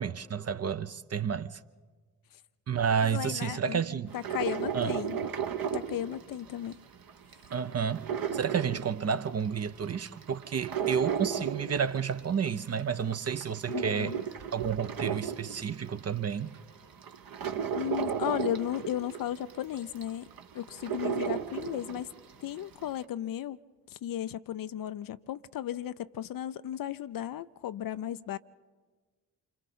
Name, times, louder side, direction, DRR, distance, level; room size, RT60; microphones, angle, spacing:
voice 1, 0.0-1.6 2.7-4.1 4.7-5.0 7.5-14.2 14.5-16.6, right 7 dB, 35° right, 0.7 m, -31 dB
voice 2, 3.0-3.8 4.1-5.2 5.7-6.8 13.7-14.2 17.8-20.2 20.5-22.1 22.4-23.6 23.9-28.4, left 11 dB, 50° left, 0.6 m, -35 dB
sound 1, 4.1-6.7 7.1-9.5 9.9-12.5 12.9-16.0 16.5-16.6 17.0-22.2 22.6-22.7, right 8 dB, 50° right, 1.2 m, -34 dB
28.0 x 24.5 x 4.3 m
hypercardioid pair, 40°, 43 cm